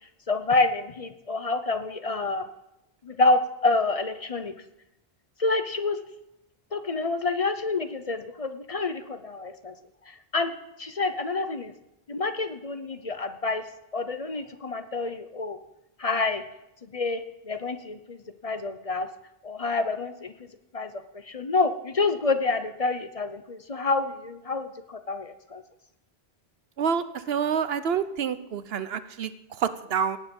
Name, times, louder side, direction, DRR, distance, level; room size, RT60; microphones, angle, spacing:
voice 1, 0.3-2.5 3.0-4.5 5.4-6.0 6.7-9.7 10.1-10.5 10.8-11.7 12.1-13.6 13.9-15.6 16.0-16.4 16.8-19.1 19.4-20.3 20.7-25.6, left 3 dB, 40° left, 10 dB, 0.8 m, -28 dB
voice 2, 26.8-30.2, right 7 dB, 75° right, 13 dB, 1.0 m, -28 dB
17.0 x 9.4 x 5.4 m, 0.89 s
omnidirectional pair, 1.0 m